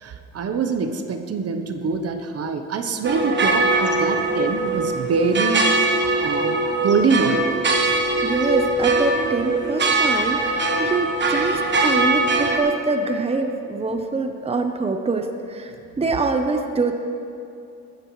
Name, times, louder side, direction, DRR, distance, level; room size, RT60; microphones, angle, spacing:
voice 1, 0.0-5.6 6.0-7.4, right 5 dB, 55° right, 7 dB, 0.9 m, -24 dB
sound 1, 3.0-12.6, right 2 dB, 40° right, 1.3 m, -21 dB
voice 2, 7.7-15.7 16.0-16.9, right 3 dB, 20° right, 5 dB, 0.8 m, -25 dB
15.0 x 13.0 x 3.2 m, 2.7 s
cardioid pair, 90°, 30 cm